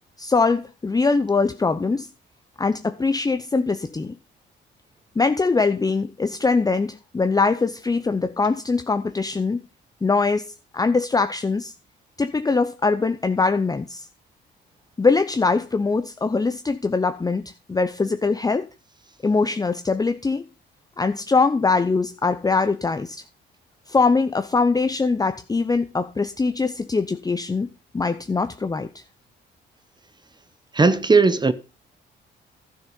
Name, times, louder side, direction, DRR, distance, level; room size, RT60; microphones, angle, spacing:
voice 1, 0.2-2.1 2.6-4.1 5.2-9.6 10.0-11.7 12.2-14.1 15.0-18.7 19.2-20.4 21.0-23.2 23.9-27.7 27.9-28.9, left 4 dB, 20° left, 0.7 m, -22 dB
voice 2, 30.7-31.5, right 4 dB, 20° right, 0.9 m, -17 dB
12.0 x 6.6 x 5.3 m
cardioid pair, 90°, 20 cm